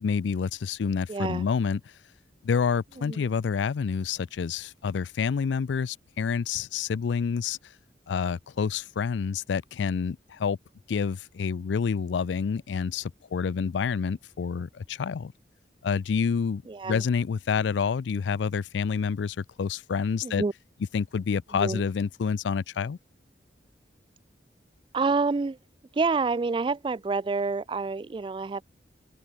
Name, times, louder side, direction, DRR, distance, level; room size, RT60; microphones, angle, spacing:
voice 1, 0.0-1.8 2.4-7.6 8.1-10.6 10.9-15.3 15.8-20.4 20.9-23.0, left 6 dB, 80° left, 0.4 m, -28 dB
voice 2, 1.1-1.5 3.0-3.3 16.7-17.0 20.2-20.5 21.6-21.8 24.9-25.6 25.9-28.6, right 4 dB, 25° right, 0.3 m, -28 dB
head